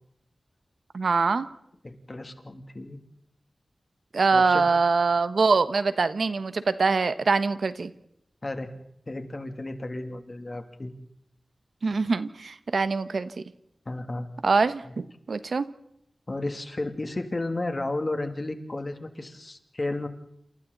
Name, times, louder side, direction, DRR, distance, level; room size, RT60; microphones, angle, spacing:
voice 1, 0.9-1.5 4.1-7.9 11.8-13.3 14.4-15.7, right 4 dB, 80° right, 13 dB, 1.3 m, -24 dB
voice 2, 1.8-3.0 4.3-4.7 8.4-8.7 9.1-10.9 13.8-14.3 14.8-14.9 16.3-20.1, left 2 dB, 40° left, 6 dB, 3.0 m, -33 dB
28.5 x 28.5 x 4.2 m, 0.76 s
wide cardioid pair, 65°, 0 cm